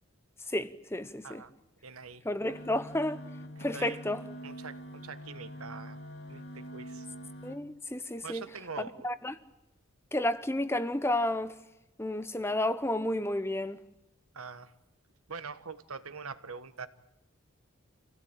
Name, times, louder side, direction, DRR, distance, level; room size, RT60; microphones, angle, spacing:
voice 1, 0.5-1.4 2.2-3.2 3.6-4.2 7.4-8.4 9.0-9.3 10.1-11.5 12.0-13.8, left 1 dB, 10° left, 0.8 m, -31 dB
voice 2, 1.8-2.2 3.7-4.0 4.4-6.0 6.3-7.1 8.2-9.1 14.3-14.7 15.3-16.9, right 5 dB, 90° right, 1.3 m, -43 dB
sound 1, 2.4-7.6, equal, 50° left, 2.6 m, -45 dB
27.0 x 16.5 x 8.9 m
head